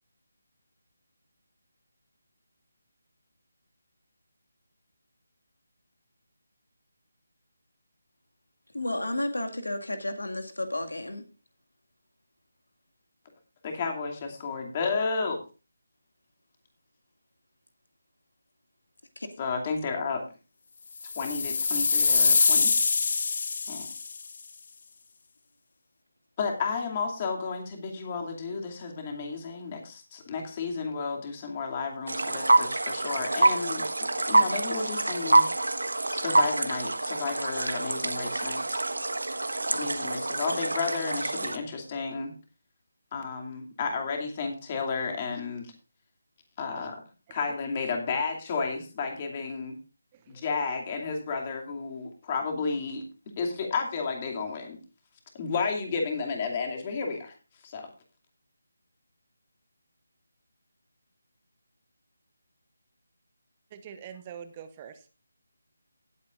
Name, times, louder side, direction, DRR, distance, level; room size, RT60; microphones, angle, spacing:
voice 1, 8.7-11.2 19.2-19.3, left 1 dB, 80° left, 6 dB, 2.1 m, -32 dB
voice 2, 13.6-15.4 19.4-20.2 21.2-22.7 23.7-23.9 26.4-33.9 34.3-35.5 36.1-38.8 39.7-42.3 43.1-45.7 46.6-47.0 47.3-49.8 50.3-53.0 53.4-54.8 55.3-57.3 57.6-57.9, left 4 dB, 30° left, 2 dB, 2.5 m, -32 dB
sound 1, 21.0-24.2, left 4 dB, 50° left, 0.4 m, -24 dB
sound 2, 32.1-41.6, right 2 dB, 75° right, 1.4 m, -26 dB
voice 3, 63.7-65.1, right 8 dB, 25° right, 9 dB, 1.0 m, -44 dB
18.0 x 8.5 x 2.5 m, 0.33 s
figure-of-eight pair, 155°, 0 cm